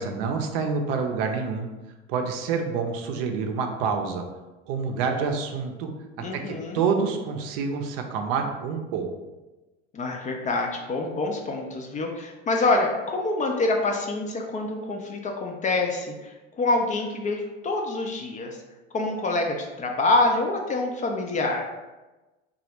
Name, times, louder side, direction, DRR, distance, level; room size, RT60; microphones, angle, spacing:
voice 1, 0.0-1.7 2.1-4.3 4.7-5.9 6.3-9.1, right 5 dB, 60° right, 4 dB, 0.6 m, -27 dB
voice 2, 6.2-6.8 9.9-18.6 18.9-21.7, left 2 dB, 25° left, 2 dB, 0.4 m, -26 dB
3.1 x 2.4 x 3.0 m, 1.1 s
hypercardioid pair, 80°, 33 cm